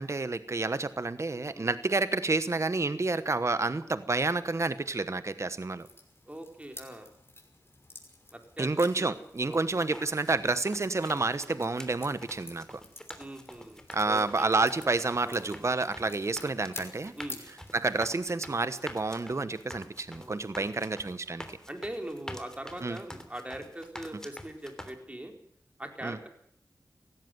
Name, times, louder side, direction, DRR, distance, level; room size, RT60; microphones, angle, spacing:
voice 1, 0.0-5.9 8.6-12.8 13.9-17.1 17.7-21.6 22.8-23.0 26.0-26.2, right 3 dB, 45° right, 13 dB, 1.1 m, -29 dB
sound 1, 5.8-18.5, left 2 dB, 35° left, 5.7 m, -51 dB
voice 2, 6.3-7.1 8.3-8.7 9.0-9.9 13.2-14.6 15.2-15.8 17.2-17.4 20.1-20.8 21.7-25.3 25.8-26.3, right 1 dB, 20° right, 5 dB, 4.5 m, -42 dB
sound 2, 9.7-24.9, left 1 dB, 10° left, 3.2 m, -47 dB
17.5 x 16.0 x 9.3 m, 0.68 s
wide cardioid pair, 60°, 7 cm